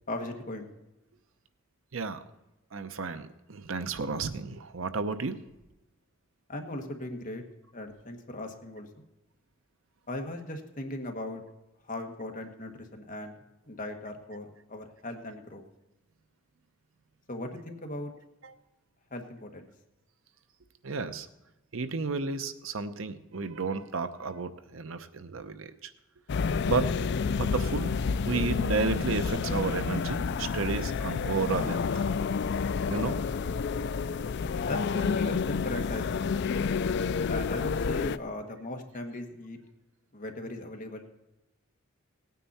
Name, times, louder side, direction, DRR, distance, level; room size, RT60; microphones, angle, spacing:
voice 1, 0.1-0.7 6.5-7.4 7.7-8.9 10.1-11.4 11.8-13.3 13.7-15.6 17.3-18.1 19.1-19.7 34.7-36.3 37.3-39.6 40.1-41.1, left 1 dB, 40° left, 4 dB, 1.5 m, -38 dB
voice 2, 2.7-5.4 18.4-18.5 20.8-21.3 21.7-25.7 26.7-26.9 27.4-28.0 28.3-32.0 32.9-33.1, right 4 dB, 70° right, 11 dB, 0.7 m, -32 dB
sound 1, 26.3-38.2, left 5 dB, 55° left, 0.4 m, -29 dB
18.0 x 9.3 x 4.2 m, 1.0 s
head